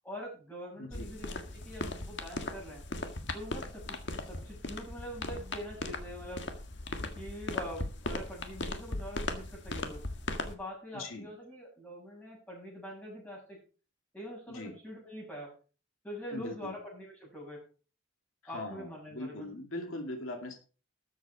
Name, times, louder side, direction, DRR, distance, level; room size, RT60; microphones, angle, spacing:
voice 1, 0.0-2.8 3.3-4.0 4.3-6.5 7.2-10.0 10.4-13.6 14.1-15.5 16.0-17.6 18.5-19.5, equal, 5° left, -4 dB, 7.6 m, -44 dB
voice 2, 0.7-1.2 10.9-11.3 14.5-14.7 16.3-16.8 18.4-20.5, left 2 dB, 85° left, 4 dB, 2.5 m, -41 dB
sound 1, 0.9-10.5, left 2 dB, 60° left, 1.7 m, -38 dB
13.0 x 8.2 x 4.9 m, 0.37 s
head